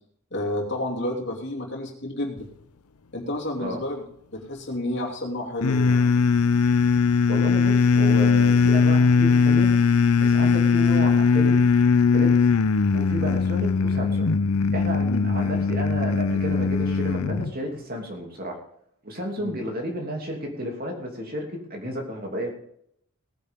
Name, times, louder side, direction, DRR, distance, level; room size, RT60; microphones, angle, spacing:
voice 1, 0.3-2.5 3.1-4.0 4.3-6.1 13.3-13.4 15.1-15.3 19.4-19.5, left 1 dB, 50° left, -1 dB, 2.9 m, -30 dB
sound 1, 5.6-17.5, left 5 dB, 90° left, 0.6 m, -20 dB
voice 2, 7.3-9.7 10.2-11.6 12.1-12.4 12.9-14.4 14.7-18.6 19.0-22.5, equal, 40° right, 1 dB, 2.9 m, -32 dB
18.0 x 10.0 x 3.7 m, 0.68 s
head